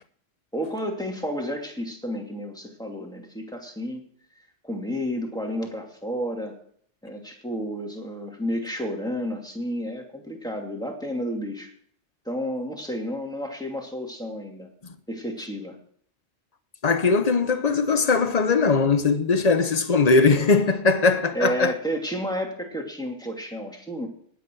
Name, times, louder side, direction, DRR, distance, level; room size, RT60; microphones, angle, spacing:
voice 1, 0.5-4.0 4.6-6.5 7.0-11.7 12.2-14.7 15.1-15.8 21.3-24.1, equal, 5° left, 2.5 m, -31 dB
voice 2, 16.8-21.7, left 4 dB, 35° left, 0.9 m, -20 dB
19.0 x 8.4 x 4.7 m
omnidirectional pair, 1.2 m